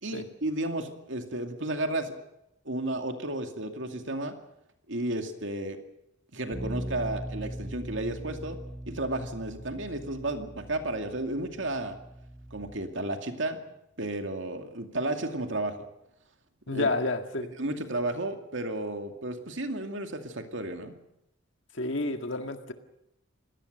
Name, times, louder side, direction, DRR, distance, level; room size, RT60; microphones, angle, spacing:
voice 1, 0.0-2.1 2.7-4.4 4.9-5.8 6.3-12.0 12.5-13.7 14.0-15.9 16.7-16.9 17.6-21.0, right 2 dB, 70° right, 5 dB, 2.4 m, -33 dB
Bass guitar, 6.5-12.8, equal, 10° right, 2.8 m, -40 dB
voice 2, 16.7-17.5 21.7-22.7, left 2 dB, 70° left, 6 dB, 1.9 m, -30 dB
26.5 x 18.5 x 6.7 m, 0.84 s
head